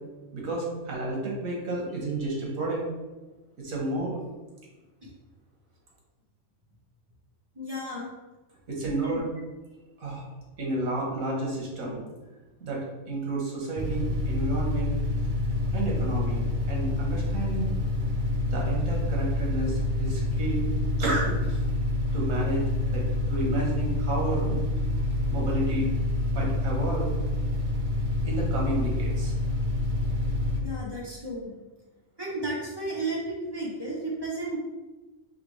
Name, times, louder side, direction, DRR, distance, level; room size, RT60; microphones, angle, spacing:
voice 1, 0.3-2.8 3.6-4.2 8.7-9.3 10.0-10.2 10.6-12.1 12.6-14.9 15.7-17.7 18.5-20.6 21.0-21.6 22.1-22.6 22.9-24.6 25.3-25.9 26.3-27.1 28.2-29.3, right 2 dB, 85° right, -2 dB, 1.6 m, -31 dB
voice 2, 7.5-8.1 9.0-9.2 30.6-31.5 32.2-34.6, right 1 dB, 20° right, -5 dB, 1.0 m, -33 dB
sound 1, 13.8-30.6, left 1 dB, 50° right, 0.6 m, -27 dB
4.8 x 3.3 x 3.2 m, 1.2 s
omnidirectional pair, 1.4 m